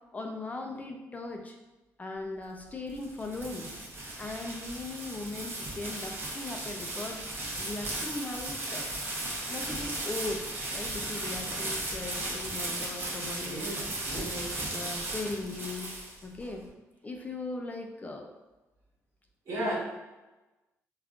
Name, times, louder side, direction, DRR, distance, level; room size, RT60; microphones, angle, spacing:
voice 1, 0.1-1.6 2.0-3.7 4.2-7.2 7.6-8.9 9.5-13.6 14.1-16.7 17.0-18.3 19.6-19.7, left 2 dB, 25° left, 3 dB, 0.4 m, -39 dB
sound 1, 2.7-16.5, right 1 dB, 40° right, 0.8 m, -36 dB
voice 2, 13.5-14.4 19.5-19.7, right 1 dB, 60° right, -5 dB, 1.1 m, -35 dB
3.5 x 2.3 x 2.4 m, 1.1 s
cardioid pair, 90°, 6 cm